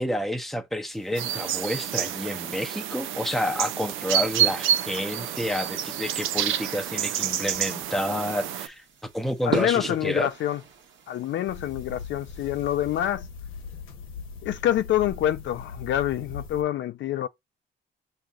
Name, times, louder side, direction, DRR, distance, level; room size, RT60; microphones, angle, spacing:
voice 1, 0.0-8.8 9.1-10.3, equal, ahead, 0.7 m, -29 dB
sound 1, 0.9-13.1, right 7 dB, 70° right, 1.1 m, -42 dB
sound 2, 1.1-8.7, right 10 dB, 85° right, 0.5 m, -28 dB
voice 2, 9.5-10.6 11.1-13.3 14.4-17.3, left 12 dB, 70° left, 0.4 m, -26 dB
sound 3, 11.5-16.6, left 5 dB, 90° left, 0.9 m, -40 dB
6.2 x 2.8 x 2.4 m
cardioid pair, 90°, 20 cm